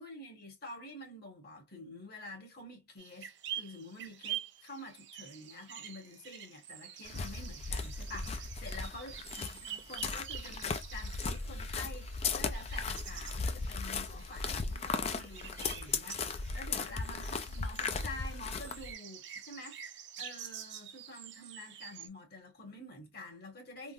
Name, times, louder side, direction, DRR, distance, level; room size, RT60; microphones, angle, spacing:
voice 1, 0.0-23.9, left 1 dB, 55° left, 1.5 m, -48 dB
sound 1, 3.0-22.1, right 10 dB, 65° right, 0.6 m, -47 dB
sound 2, 7.1-18.9, left 4 dB, 35° left, 0.4 m, -37 dB
3.7 x 2.0 x 2.5 m
head